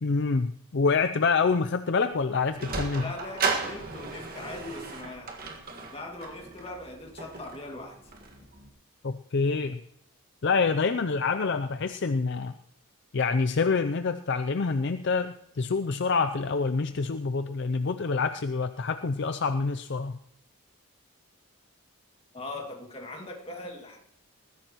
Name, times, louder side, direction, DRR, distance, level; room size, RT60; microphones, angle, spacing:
voice 1, 0.0-3.1 9.0-9.8 10.4-12.5 13.1-20.2, left 4 dB, 55° left, 9 dB, 0.5 m, -26 dB
Sliding door, 2.4-8.7, right 4 dB, 40° right, 1.8 m, -35 dB
voice 2, 3.0-5.3 5.8-8.0 22.3-24.0, left 2 dB, 25° left, 1 dB, 2.2 m, -40 dB
20.5 x 15.0 x 3.0 m, 0.74 s
head